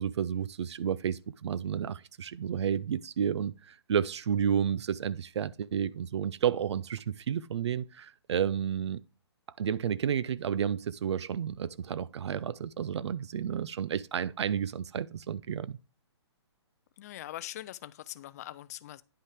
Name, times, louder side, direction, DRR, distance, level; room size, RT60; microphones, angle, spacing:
voice 1, 0.0-9.0 9.6-15.8, right 8 dB, 75° right, 0.4 m, -31 dB
voice 2, 17.0-19.0, left 13 dB, 35° left, 0.4 m, -42 dB
9.9 x 5.5 x 3.4 m
hypercardioid pair, 150°, 15 cm